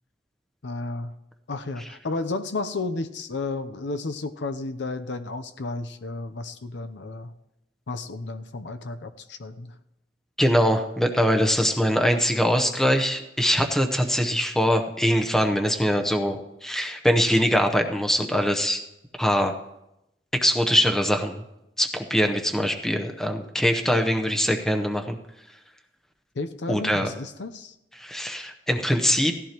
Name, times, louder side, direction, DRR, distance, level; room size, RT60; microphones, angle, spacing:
voice 1, 0.6-1.2 1.5-7.3 7.9-9.8 26.3-27.7, left 3 dB, 80° left, 9 dB, 0.7 m, -32 dB
voice 2, 10.4-18.8 19.2-19.5 20.4-21.4 21.8-25.2 26.7-27.1 28.0-29.3, equal, 5° left, 4 dB, 0.8 m, -22 dB
17.0 x 14.5 x 3.0 m, 0.89 s
head